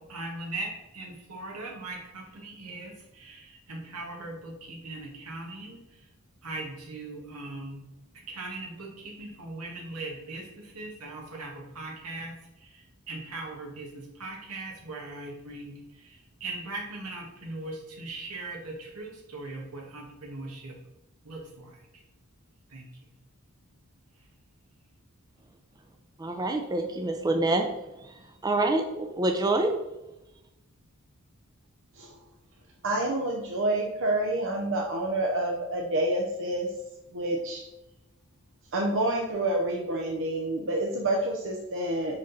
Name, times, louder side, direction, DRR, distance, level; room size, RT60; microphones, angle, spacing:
voice 1, 0.0-6.1 6.4-7.9 8.3-20.8 21.2-21.8 22.7-22.9, right 2 dB, 85° right, 0 dB, 1.8 m, -40 dB
voice 2, 26.2-27.7 28.0-29.7, right 2 dB, 15° right, 5 dB, 0.5 m, -27 dB
voice 3, 32.8-36.7 37.1-37.6 38.7-42.2, right 1 dB, 60° right, 0 dB, 0.8 m, -28 dB
6.0 x 5.1 x 4.1 m, 0.94 s
head